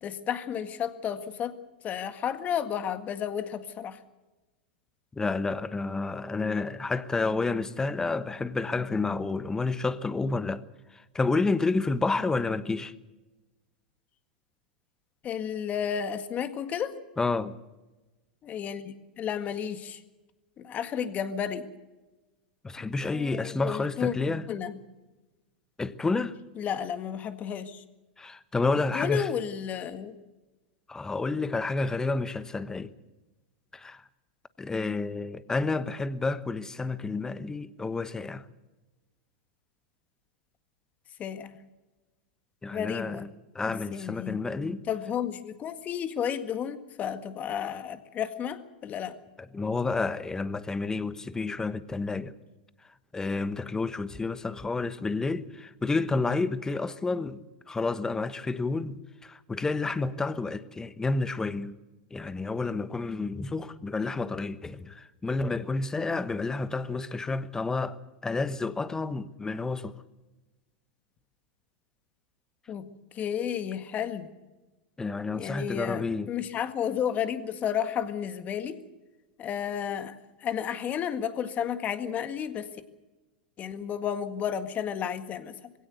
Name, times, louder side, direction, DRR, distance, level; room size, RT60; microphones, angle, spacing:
voice 1, 0.0-1.5 1.8-4.0 15.2-17.0 18.4-20.0 20.6-21.7 23.0-24.1 24.5-24.8 26.6-27.8 28.9-30.2 41.2-41.6 42.7-43.2 43.7-44.4 44.9-49.2 72.7-72.8 73.1-74.3 75.3-78.8 79.4-82.7 83.6-85.7, left 8 dB, 30° left, 1.8 m, -32 dB
voice 2, 5.2-10.6 10.9-12.9 17.2-17.6 22.6-24.5 25.8-26.3 28.2-29.3 30.9-32.9 33.7-34.0 34.6-38.4 42.6-43.3 43.5-44.8 49.5-52.3 53.1-61.8 62.1-68.0 68.2-69.9 75.0-76.3, left 3 dB, 10° left, 1.1 m, -30 dB
21.5 x 17.0 x 8.1 m
hypercardioid pair, 105°, 5 cm